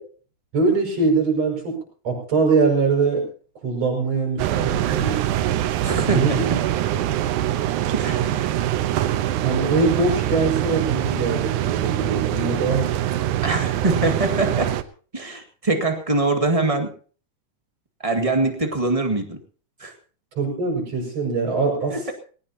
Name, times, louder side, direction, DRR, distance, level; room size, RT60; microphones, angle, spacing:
voice 1, 0.5-1.8 2.0-3.2 3.6-5.3 6.1-6.6 6.9-7.0 9.4-12.8 20.4-22.1, right 4 dB, 55° right, 2 dB, 7.2 m, -22 dB
sound 1, 4.4-14.8, right 12 dB, 80° right, 2.3 m, -23 dB
voice 2, 5.8-6.4 7.9-8.5 13.4-14.7 15.1-16.9 18.0-19.4 19.8-19.9 21.9-22.1, right 2 dB, 15° right, 5 dB, 1.4 m, -23 dB
20.0 x 18.5 x 2.9 m, 0.40 s
omnidirectional pair, 3.6 m